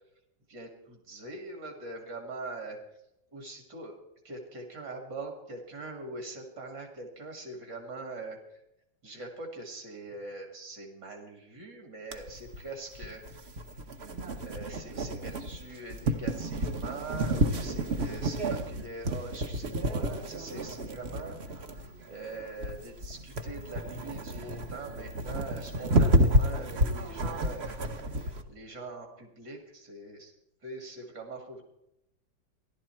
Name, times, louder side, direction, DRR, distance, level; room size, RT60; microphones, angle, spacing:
voice 1, 0.5-3.0 3.3-3.9 4.2-8.6 9.0-13.6 14.4-21.5 21.8-30.3 30.6-31.6, right 2 dB, 60° right, 2 dB, 2.6 m, -43 dB
sound 1, 12.1-28.4, equal, 45° right, 1.0 m, -30 dB
16.5 x 11.5 x 4.4 m, 0.82 s
omnidirectional pair, 2.1 m